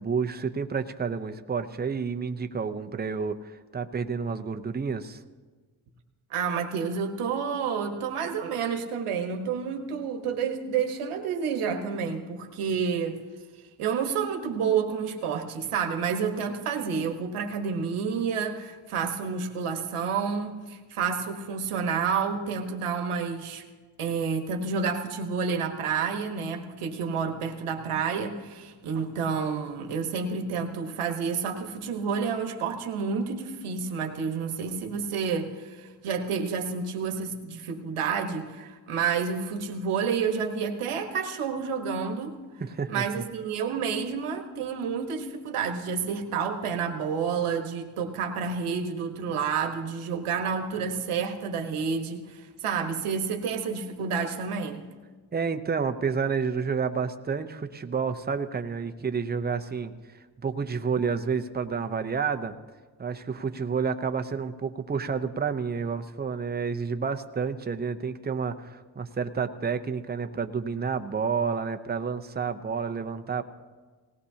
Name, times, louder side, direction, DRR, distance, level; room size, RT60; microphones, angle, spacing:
voice 1, 0.0-5.2 42.6-43.0 55.3-59.9 60.4-62.5 63.0-73.4, right 5 dB, 20° right, 8 dB, 0.6 m, -30 dB
voice 2, 6.3-13.2 13.8-23.6 24.0-42.4 42.9-54.8, right 6 dB, 85° right, 4 dB, 1.4 m, -29 dB
19.0 x 17.5 x 2.8 m, 1.4 s
cardioid pair, 95°, 49 cm